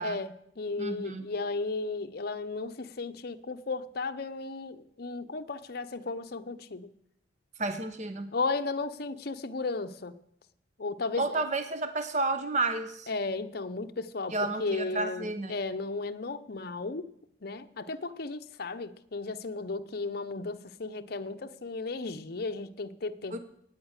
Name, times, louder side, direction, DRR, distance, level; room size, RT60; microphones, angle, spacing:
voice 1, 0.0-6.9 8.3-10.2 10.8-11.4 13.1-17.1 17.4-23.4, left 3 dB, 55° left, 0.7 m, -35 dB
voice 2, 0.8-1.3 7.6-8.3 11.2-13.1 14.3-15.5 23.3-23.4, right 2 dB, 40° right, 0.8 m, -31 dB
17.5 x 9.0 x 6.5 m
head